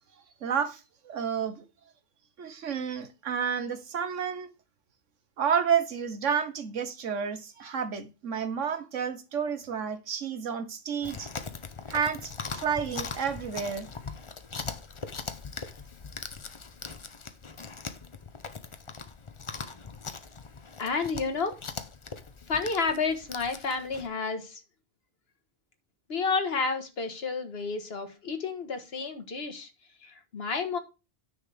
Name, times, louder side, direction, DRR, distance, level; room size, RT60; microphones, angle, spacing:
voice 1, 0.4-1.6 2.4-4.5 5.4-11.3 11.9-12.3 12.6-13.9, right 7 dB, 85° right, 1.5 m, -30 dB
Chewing mastication, 11.0-24.1, left 4 dB, 30° left, 0.6 m, -40 dB
voice 2, 20.8-21.6 22.5-24.6 26.1-29.7 30.0-30.8, left 4 dB, 55° left, 1.7 m, -30 dB
9.7 x 6.9 x 3.4 m
omnidirectional pair, 1.2 m